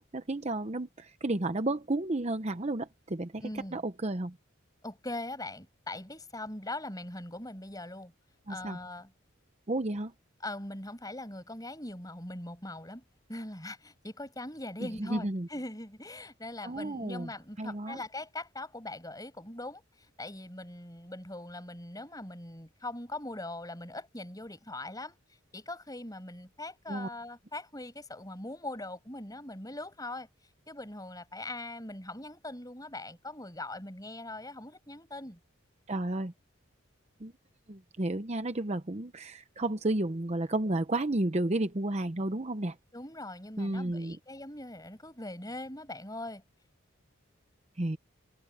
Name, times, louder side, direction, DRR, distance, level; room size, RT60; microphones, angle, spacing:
voice 1, 0.0-3.4 3.7-4.4 8.5-8.8 9.7-10.1 15.0-15.5 16.6-17.3 17.6-18.0 26.9-27.1 35.9-36.3 37.2-37.3 37.7-42.8 43.6-44.2 47.8-48.0, right 2 dB, 30° right, 0.8 m, -32 dB
voice 2, 3.4-3.8 4.8-8.1 8.5-9.1 10.4-13.0 13.3-19.8 20.2-25.2 25.5-30.3 30.7-35.4 42.9-46.4, left 2 dB, 20° left, 7.7 m, -41 dB
head